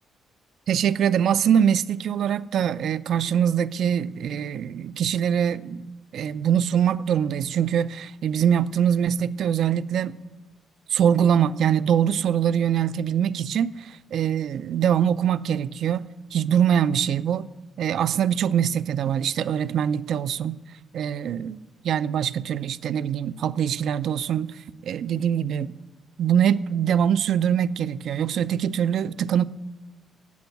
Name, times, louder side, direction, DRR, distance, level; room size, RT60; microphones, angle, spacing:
voice 1, 0.7-10.2 10.9-17.5 17.8-20.6 20.9-24.5 24.8-25.7 26.2-29.4, right 9 dB, 70° right, 0.4 m, -23 dB
9.3 x 8.0 x 9.2 m
cardioid pair, 90°, 0 cm